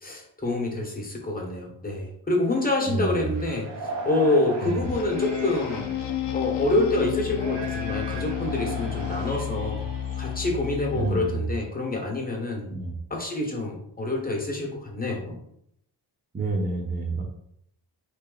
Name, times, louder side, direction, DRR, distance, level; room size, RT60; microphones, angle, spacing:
voice 1, 0.0-5.9 6.3-9.8 10.2-12.7 13.1-15.3, left 2 dB, 20° left, 0 dB, 1.1 m, -27 dB
sound 1, 2.4-2.6 3.1-6.6 7.3-10.7, right 3 dB, 85° right, 1.1 m, -38 dB
voice 2, 2.8-3.3 4.6-4.8 10.9-11.4 12.7-12.9 16.3-17.2, right 2 dB, 25° right, -2 dB, 0.8 m, -28 dB
sound 2, 4.8-11.4, left 10 dB, 80° left, 0.5 m, -31 dB
3.9 x 3.2 x 3.9 m, 0.73 s
wide cardioid pair, 135°, 42 cm